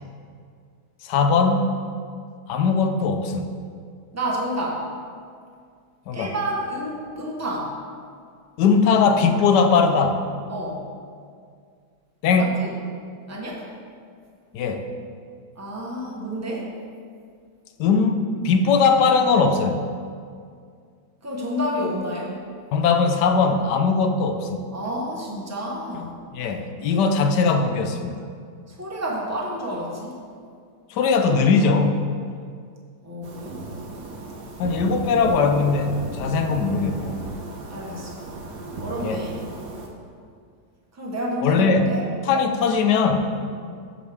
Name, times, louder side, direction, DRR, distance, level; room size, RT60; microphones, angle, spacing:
voice 1, 1.0-1.7 2.5-3.5 6.1-6.3 8.6-10.2 12.2-12.5 14.5-14.9 17.8-19.8 22.7-24.6 26.3-28.1 30.9-32.0 34.6-37.2 39.0-39.2 41.4-41.9 42.3-43.3, left 4 dB, 80° left, 7 dB, 1.2 m, -20 dB
voice 2, 4.1-4.8 6.1-7.7 10.5-10.8 12.4-12.7 13.3-13.6 15.5-16.7 21.2-22.4 24.7-26.1 28.7-30.2 33.0-33.6 37.7-38.2 38.8-39.4 40.9-42.1 43.4-43.7, equal, 10° right, -2 dB, 0.8 m, -29 dB
sound 1, 33.2-39.9, right 2 dB, 75° right, 1.6 m, -35 dB
13.5 x 5.0 x 3.4 m, 2.2 s
omnidirectional pair, 1.8 m